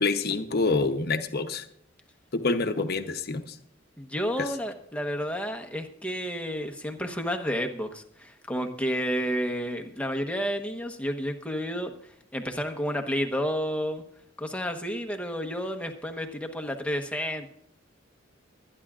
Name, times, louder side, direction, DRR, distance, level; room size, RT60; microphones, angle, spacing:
voice 1, 0.0-1.6 2.3-3.6 4.4-4.5, left 3 dB, 50° left, 7 dB, 0.9 m, -27 dB
voice 2, 4.0-14.0 14.4-17.5, equal, 5° left, 4 dB, 1.1 m, -31 dB
25.0 x 10.0 x 2.5 m, 0.70 s
head